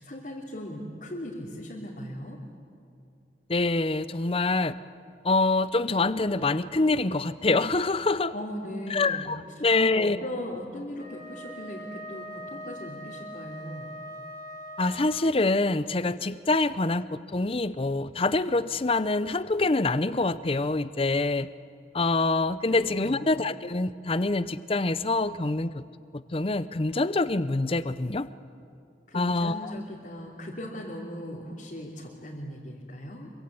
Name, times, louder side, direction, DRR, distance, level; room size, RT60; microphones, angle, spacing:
voice 1, 0.0-2.4 8.3-9.3 9.6-13.9 22.7-23.3 29.1-33.3, left 1 dB, 45° left, -4 dB, 3.0 m, -38 dB
voice 2, 3.5-4.7 5.2-8.3 8.9-10.2 14.8-21.5 21.9-25.8 26.1-28.3 29.1-29.7, left 3 dB, 30° left, 15 dB, 0.6 m, -25 dB
Wind instrument woodwind instrument, 10.9-15.5, equal, 25° right, 4.3 m, -42 dB
25.5 x 24.0 x 8.6 m, 2.6 s
head